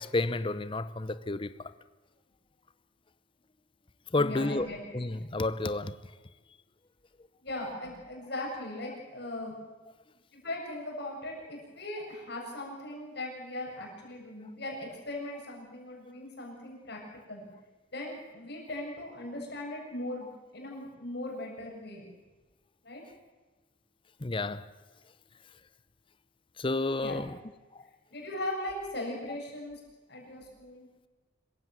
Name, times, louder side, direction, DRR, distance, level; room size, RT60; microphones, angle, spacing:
voice 1, 0.0-1.7 4.1-6.0 24.2-24.7 26.6-27.4 27.7-27.9, left 2 dB, 25° left, 0.7 m, -31 dB
voice 2, 4.1-5.0 7.4-9.5 10.3-17.0 17.3-17.5 17.9-20.3 20.5-22.1 22.8-23.0 27.0-27.2 28.1-29.8 30.1-30.9, left 1 dB, 55° left, 7.4 m, -39 dB
26.0 x 15.5 x 7.6 m
head